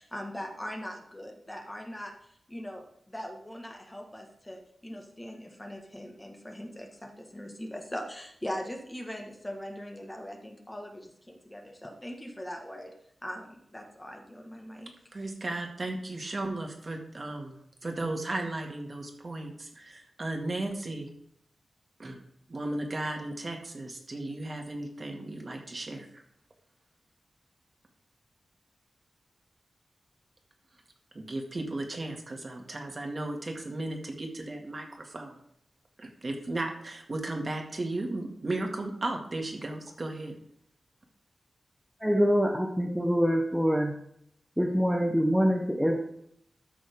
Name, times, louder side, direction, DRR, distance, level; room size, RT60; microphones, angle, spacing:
voice 1, 0.0-12.9 13.2-14.9, equal, 15° left, 2 dB, 1.6 m, -41 dB
voice 2, 15.1-21.1 22.0-22.2 22.5-26.2 31.1-35.4 36.0-40.4, right 2 dB, 40° right, 2 dB, 1.9 m, -35 dB
voice 3, 42.0-44.0 44.6-46.0, equal, 5° right, -1 dB, 1.1 m, -25 dB
13.0 x 6.2 x 3.6 m, 0.71 s
wide cardioid pair, 80°, 0 cm